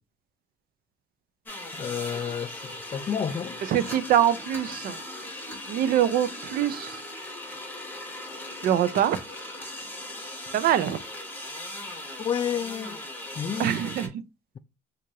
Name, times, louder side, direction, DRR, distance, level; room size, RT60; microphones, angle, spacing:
sound 1, 1.5-14.1, left 1 dB, 10° left, 1.1 m, -38 dB
voice 1, 1.8-3.6 12.2-13.0 13.4-13.7, left 8 dB, 25° left, 0.3 m, -30 dB
voice 2, 3.7-5.0 5.7-7.0 8.6-9.2 10.5-11.0 13.6-14.1, right 10 dB, 60° right, 0.5 m, -24 dB
4.5 x 2.5 x 2.7 m
cardioid pair, 110°, 17 cm